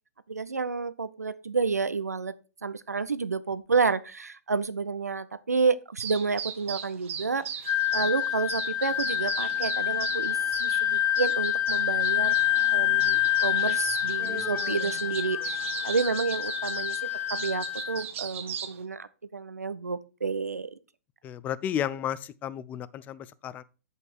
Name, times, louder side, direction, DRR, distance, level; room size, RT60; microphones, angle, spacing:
voice 1, 0.3-2.4 2.6-7.5 7.9-12.4 12.7-15.6 15.8-20.7, right 4 dB, 85° right, 0.6 m, -30 dB
sound 1, 6.0-18.8, right 8 dB, 55° right, 1.4 m, -38 dB
Wind instrument woodwind instrument, 7.6-18.0, left 12 dB, 40° left, 1.6 m, -27 dB
Human voice, 14.2-15.9, left 1 dB, ahead, 1.6 m, -43 dB
voice 2, 21.2-23.6, left 10 dB, 20° left, 0.4 m, -33 dB
7.9 x 5.5 x 4.4 m
figure-of-eight pair, 125°, 8 cm